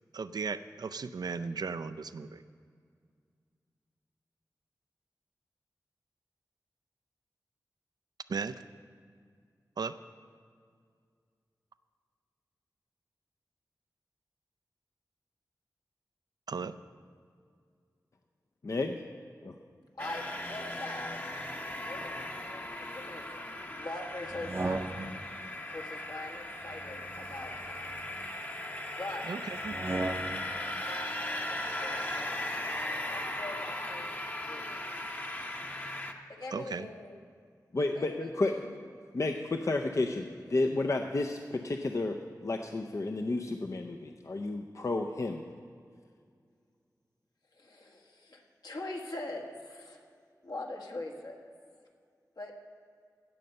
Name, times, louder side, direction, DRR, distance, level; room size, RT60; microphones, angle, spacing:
voice 1, 0.1-2.4 8.3-8.6 9.8-10.0 16.5-16.8 29.3-29.8 36.5-36.9, right 5 dB, 75° right, 12 dB, 0.4 m, -36 dB
voice 2, 18.6-19.0 19.4-19.5 37.7-38.7 39.1-45.4, left 2 dB, 50° left, 4 dB, 0.5 m, -32 dB
voice 3, 20.0-21.2 21.8-25.2 25.7-27.9 29.0-29.4 30.8-32.4 33.1-34.1 34.4-34.8 36.3-37.2 37.9-38.7 47.5-50.0 50.4-51.4 52.4-52.5, left 2 dB, 65° left, 1 dB, 1.6 m, -43 dB
sound 1, 20.0-36.1, left 1 dB, 25° left, 0.9 m, -38 dB
sound 2, 24.3-25.3 26.6-28.3 29.6-30.6, right 2 dB, 35° right, 0.6 m, -37 dB
16.5 x 6.7 x 5.3 m, 2.1 s
wide cardioid pair, 75°, 7 cm